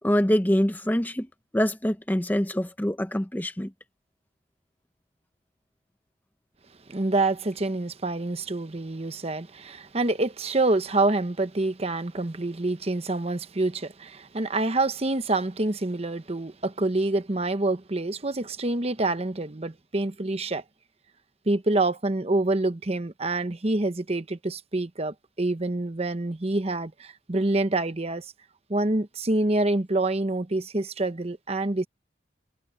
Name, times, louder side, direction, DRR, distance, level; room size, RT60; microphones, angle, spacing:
voice 1, 0.0-1.3 1.5-3.7, equal, 10° left, 0.7 m, -24 dB
voice 2, 6.9-20.6 21.5-28.3 28.7-31.9, right 2 dB, 35° right, 1.0 m, -26 dB
head